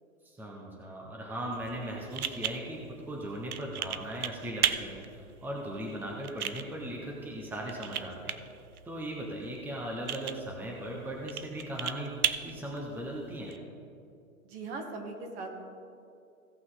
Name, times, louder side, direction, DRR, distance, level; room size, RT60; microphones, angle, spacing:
voice 1, 0.2-2.8 3.0-8.4 8.8-12.1 12.4-13.5, right 1 dB, 5° right, -2 dB, 1.1 m, -38 dB
sound 1, 1.5-13.6, right 9 dB, 80° right, 0.7 m, -37 dB
voice 2, 14.4-15.6, right 3 dB, 45° right, 2 dB, 1.9 m, -39 dB
16.5 x 5.9 x 4.0 m, 2.5 s
hypercardioid pair, 120°, 43 cm